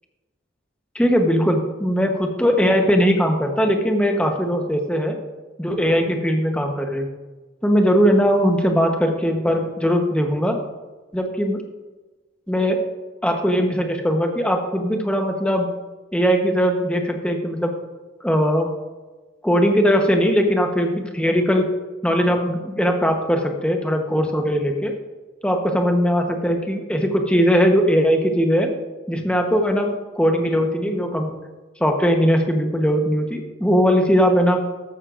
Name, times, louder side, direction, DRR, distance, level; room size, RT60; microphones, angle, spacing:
voice 1, 0.9-5.2 5.6-7.1 7.6-10.6 11.1-11.6 12.5-12.8 13.2-15.7 16.1-17.7 18.2-18.7 19.4-21.7 22.0-24.9 25.4-28.7 29.1-31.3 31.8-34.6, equal, 5° left, 3 dB, 1.0 m, -20 dB
13.5 x 9.7 x 2.5 m, 1.2 s
head